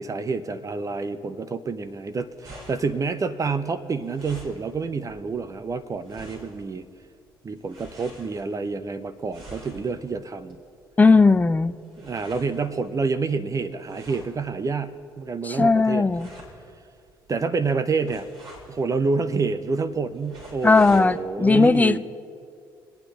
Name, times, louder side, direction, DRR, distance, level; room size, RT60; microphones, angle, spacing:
voice 1, 0.0-6.9 7.4-10.6 12.0-16.1 17.3-18.3 18.7-22.0, right 4 dB, 30° right, 10 dB, 0.7 m, -28 dB
sound 1, 1.8-21.1, right 1 dB, 45° right, 3.8 m, -49 dB
voice 2, 11.0-11.7 15.4-16.3 20.6-22.0, left 3 dB, 15° left, 15 dB, 0.5 m, -17 dB
27.5 x 9.5 x 3.1 m, 2.3 s
figure-of-eight pair, 50°, 11 cm